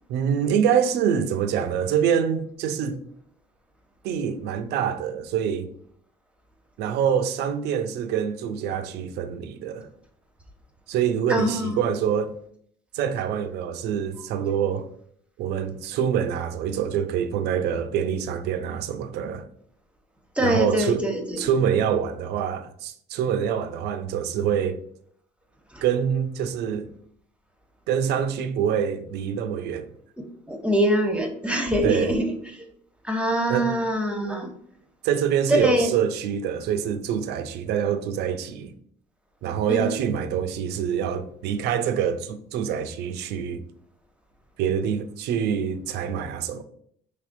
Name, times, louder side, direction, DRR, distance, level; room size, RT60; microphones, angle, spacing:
voice 1, 0.1-3.0 4.0-5.7 6.8-9.9 10.9-12.3 12.9-14.9 15.4-19.5 20.4-21.0 21.4-24.8 25.8-26.9 27.9-29.8 31.8-32.1 33.5-33.7 35.0-38.8 39.4-43.6 44.6-46.6, right 8 dB, 80° right, 0.5 m, -25 dB
voice 2, 11.3-11.8 20.4-21.5 25.7-25.8 30.2-32.7 33.0-34.5 35.5-35.9 39.7-39.9, equal, 5° right, 0.7 m, -24 dB
5.0 x 3.4 x 2.5 m
cardioid pair, 110°, 17 cm